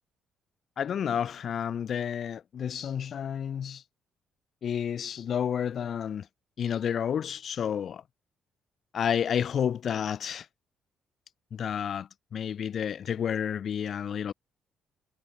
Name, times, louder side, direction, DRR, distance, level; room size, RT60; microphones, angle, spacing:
voice 1, 0.8-3.8 4.6-6.3 6.6-8.0 8.9-10.5 11.5-14.3, left 8 dB, 50° left, 2.3 m, -30 dB
cardioid pair, 115°, 0 cm